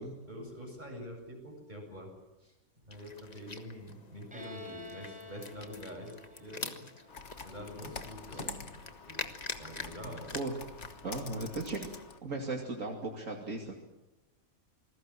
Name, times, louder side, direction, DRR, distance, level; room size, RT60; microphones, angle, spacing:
voice 1, 0.0-2.1 2.4-2.5 2.9-6.9 7.4-8.8 9.1-9.3 9.6-10.4, equal, 30° right, 1 dB, 7.8 m, -45 dB
sound 1, 2.9-12.1, left 3 dB, 30° left, 1.5 m, -46 dB
Bowed string instrument, 4.3-7.9, left 2 dB, 5° right, 5.4 m, -50 dB
Computer keyboard, 7.1-12.2, left 4 dB, 55° left, 1.9 m, -46 dB
voice 2, 8.3-8.7 10.0-10.5 11.0-11.9 12.2-13.7, right 2 dB, 65° right, 0 dB, 2.9 m, -37 dB
27.5 x 20.0 x 7.6 m, 1.0 s
omnidirectional pair, 1.5 m